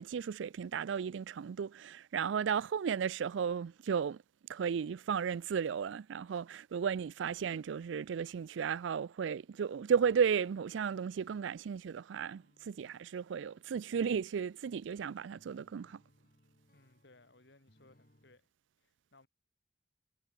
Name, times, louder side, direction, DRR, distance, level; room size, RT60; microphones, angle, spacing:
voice 1, 0.0-4.2 4.5-16.0, right 7 dB, 75° right, 0.4 m, -34 dB
sound 1, 12.3-18.4, left 1 dB, 45° left, 4.6 m, -70 dB
voice 2, 16.7-18.5 18.8-19.3, left 2 dB, 65° left, 2.3 m, -63 dB
head